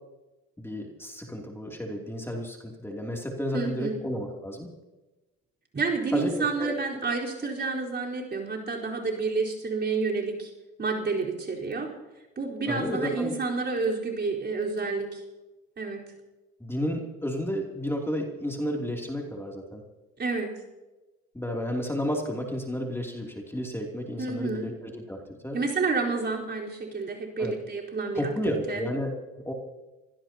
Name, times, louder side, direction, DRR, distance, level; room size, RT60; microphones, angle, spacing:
voice 1, 0.6-4.7 6.1-6.7 12.7-13.3 16.6-19.8 21.3-25.6 27.4-27.6 28.1-29.5, equal, 10° left, 0 dB, 3.0 m, -32 dB
voice 2, 3.5-4.0 5.7-10.5 10.8-11.9 12.4-15.2 15.8-16.0 20.2-20.5 24.2-24.7 25.5-28.3 28.7-28.8, right 4 dB, 35° right, -2 dB, 4.4 m, -29 dB
26.0 x 16.5 x 2.9 m, 1.1 s
supercardioid pair, 65°, 29 cm